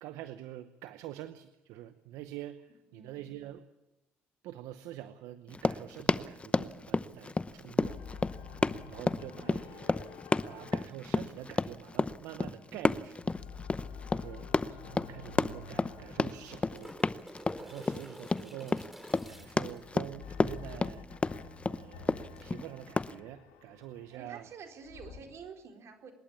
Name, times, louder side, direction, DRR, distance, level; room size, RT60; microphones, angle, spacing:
voice 1, 0.0-3.6 4.4-8.0 8.9-10.1 10.5-13.2 14.1-16.9 17.6-18.9 19.3-21.1 21.7-24.5, right 13 dB, 80° right, 11 dB, 0.8 m, -46 dB
voice 2, 2.9-3.2 9.2-9.9 24.1-26.1, right 6 dB, 60° right, 3 dB, 4.2 m, -49 dB
Run, 5.5-23.1, left 3 dB, 20° left, 0.8 m, -31 dB
sound 1, 7.8-12.8 13.1-18.4 19.2-25.2, left 5 dB, 90° left, 2.5 m, -49 dB
sound 2, 14.9-15.0 16.1-19.8 22.4-22.5, equal, 5° right, 3.1 m, -49 dB
26.0 x 11.5 x 8.6 m, 0.99 s
supercardioid pair, 70°, 5 cm